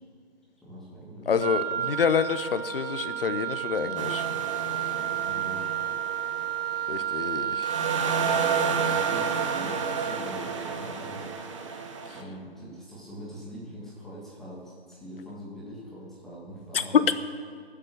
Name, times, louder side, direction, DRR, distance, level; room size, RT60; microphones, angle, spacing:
voice 1, 0.6-1.3 4.9-5.7 8.2-11.7 12.1-17.1, equal, ahead, -8 dB, 1.5 m, -43 dB
voice 2, 1.3-4.3 6.9-7.7 16.7-16.8, left 6 dB, 60° left, 12 dB, 1.0 m, -28 dB
Wind instrument woodwind instrument, 1.4-10.3, right 10 dB, 65° right, 3.1 m, -31 dB
sound 1, 4.0-7.3 7.6-12.2, right 5 dB, 30° right, 1.1 m, -31 dB
22.0 x 7.6 x 6.6 m, 2.2 s
hypercardioid pair, 170°, 32 cm